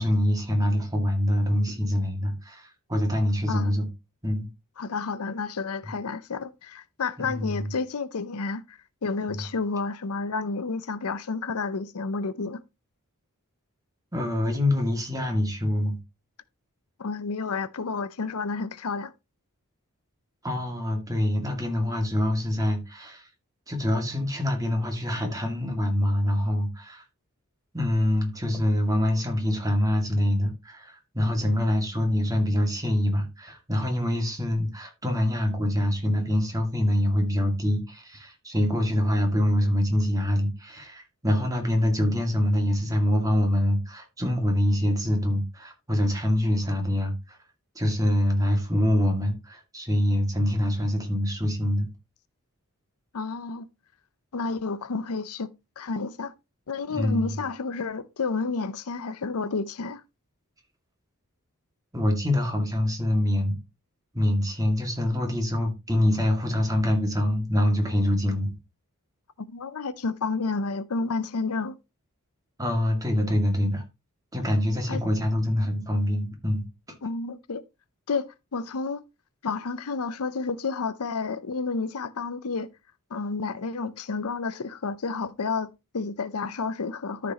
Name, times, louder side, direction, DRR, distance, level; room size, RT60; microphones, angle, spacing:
voice 1, 0.0-3.9 4.2-4.5 7.2-7.7 9.3-9.4 14.1-16.0 20.4-23.3 23.7-27.0 27.7-47.4 47.8-51.9 56.9-57.4 61.9-63.6 64.1-68.5 72.6-73.8 74.3-76.6, left 1 dB, 15° right, 2.2 m, -25 dB
voice 2, 4.8-12.6 17.0-19.1 53.1-53.7 54.3-56.3 56.7-60.0 69.5-71.7 74.9-75.0 77.0-77.6 78.1-79.0 79.4-82.7 83.1-87.3, left 4 dB, 80° left, 0.7 m, -30 dB
13.0 x 6.0 x 2.9 m
head